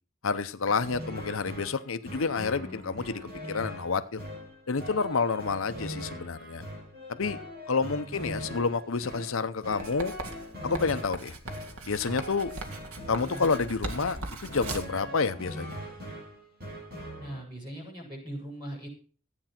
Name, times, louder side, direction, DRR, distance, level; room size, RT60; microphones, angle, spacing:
voice 1, 0.2-3.2 3.5-4.2 4.7-6.6 7.1-7.4 7.7-10.1 10.6-11.3 11.9-12.5 13.1-15.8, left 4 dB, 70° left, 0.7 m, -29 dB
sound 1, 0.7-17.4, equal, 45° right, 5.9 m, -41 dB
voice 2, 7.9-8.2 17.2-18.9, right 1 dB, 20° right, 6.7 m, -40 dB
Writing, 9.8-15.0, right 3 dB, 90° right, 2.2 m, -39 dB
14.5 x 8.9 x 5.9 m
head